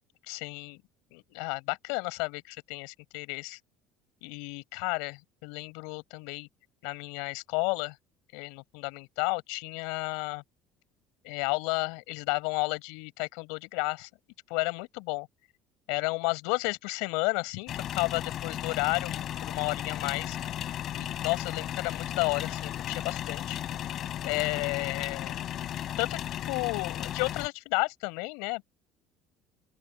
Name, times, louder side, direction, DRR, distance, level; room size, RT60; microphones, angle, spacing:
voice 1, 0.3-0.8 1.1-3.6 4.2-6.5 6.8-8.0 8.3-10.4 11.2-14.1 14.5-15.3 15.9-20.4 20.9-23.6 24.2-25.5 26.0-26.2 26.5-28.6, left 31 dB, 85° left, 6.3 m, -32 dB
sound 1, 17.7-27.5, left 11 dB, 50° left, 5.1 m, -35 dB
open air
cardioid pair, 125°, 0 cm